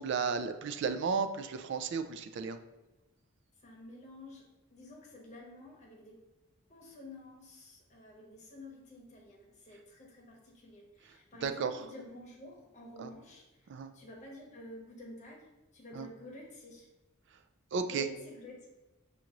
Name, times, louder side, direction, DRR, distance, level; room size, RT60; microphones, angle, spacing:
voice 1, 0.0-2.6 11.4-11.7 13.0-13.1 13.7-13.9 16.0-16.1 17.7-18.1, right 5 dB, 60° right, 9 dB, 0.3 m, -33 dB
voice 2, 3.6-6.2 6.7-16.9 17.8-18.7, left 1 dB, 35° left, -1 dB, 0.9 m, -50 dB
5.6 x 2.5 x 2.9 m, 1.1 s
head